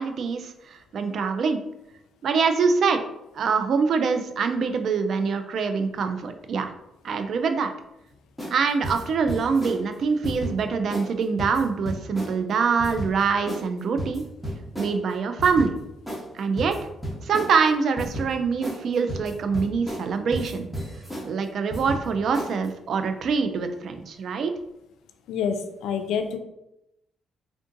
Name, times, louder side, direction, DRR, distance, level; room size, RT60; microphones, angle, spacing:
voice 1, 0.0-1.6 2.2-3.0 3.3-6.7 7.0-7.7 8.5-14.2 14.8-15.8 16.3-16.8 17.2-20.7 21.3-24.5, right 5 dB, 60° right, 8 dB, 0.3 m, -24 dB
sound 1, 8.4-8.6 8.8-9.8 10.2-10.5 10.9-11.1 11.4-12.3 12.8-13.1 13.5-13.7 14.0-14.9 15.4-15.7 16.1-16.2 16.6-17.5 18.0-18.3 18.6-18.8 19.1-20.1 20.3-21.3 21.7-22.1 22.3-22.7, equal, ahead, 0.9 m, -32 dB
voice 2, 25.3-26.4, left 7 dB, 85° left, 7 dB, 0.3 m, -27 dB
3.5 x 2.5 x 2.6 m, 0.87 s
cardioid pair, 90°, 0 cm